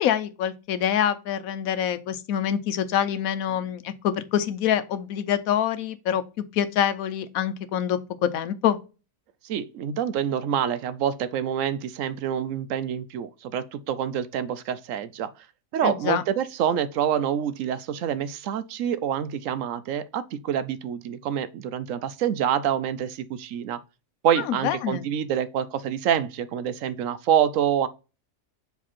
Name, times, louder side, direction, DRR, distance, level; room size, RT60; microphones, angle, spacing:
voice 1, 0.0-6.2 6.5-8.8 15.8-16.2 24.5-25.1, left 9 dB, 90° left, 1.1 m, -25 dB
voice 2, 9.4-15.3 15.7-23.8 24.2-27.9, right 9 dB, 70° right, 0.9 m, -26 dB
7.4 x 3.5 x 4.2 m
omnidirectional pair, 1.4 m